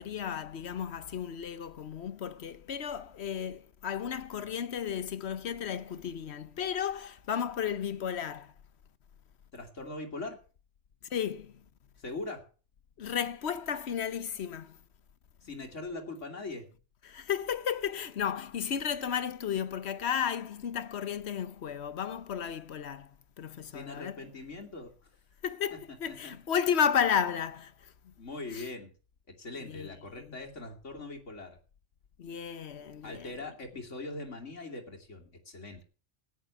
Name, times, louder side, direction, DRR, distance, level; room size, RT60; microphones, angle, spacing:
voice 1, 0.0-8.5 11.1-11.7 13.0-14.8 17.0-24.2 25.4-28.1 28.5-28.7 29.6-30.4 32.2-33.4, left 8 dB, 65° left, 1.1 m, -33 dB
voice 2, 9.5-10.4 12.0-12.4 15.4-16.7 23.7-24.9 26.1-26.3 28.2-28.9 29.4-31.6 33.0-35.8, left 2 dB, 85° left, 2.8 m, -41 dB
14.0 x 9.6 x 6.9 m
omnidirectional pair, 1.2 m